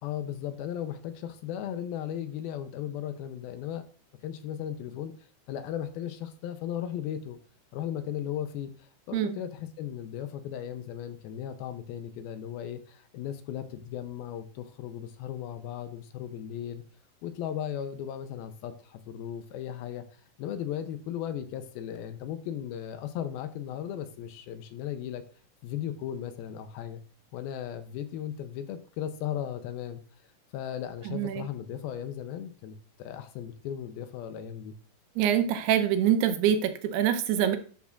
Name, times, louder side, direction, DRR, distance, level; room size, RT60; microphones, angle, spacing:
voice 1, 0.0-3.8 4.2-5.1 5.5-7.4 7.7-16.8 17.2-20.0 20.4-25.2 25.6-27.0 27.3-30.0 30.5-34.8, left 10 dB, 80° left, 9 dB, 2.5 m, -36 dB
voice 2, 31.1-31.4 35.2-37.6, right 9 dB, 85° right, 8 dB, 2.9 m, -25 dB
11.5 x 7.2 x 2.5 m, 0.41 s
omnidirectional pair, 4.6 m